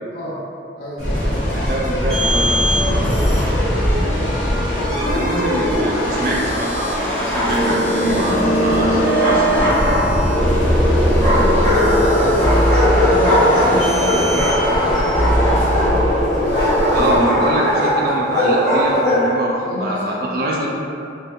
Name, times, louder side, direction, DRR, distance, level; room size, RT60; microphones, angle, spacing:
voice 1, 0.1-0.4 0.8-1.4 3.9-4.2 10.7-16.0 19.6-20.3 20.5-20.7, equal, 60° left, -6 dB, 0.6 m, -28 dB
sound 1, 1.0-17.2, equal, 40° left, 0.9 m, -19 dB
voice 2, 1.5-3.1 4.8-9.8 16.9-20.7, right 1 dB, 50° right, -3 dB, 0.4 m, -24 dB
Bark, 7.1-8.0 8.9-10.5 11.2-19.3, equal, 15° left, 0.6 m, -19 dB
2.4 x 2.2 x 2.7 m, 2.6 s
head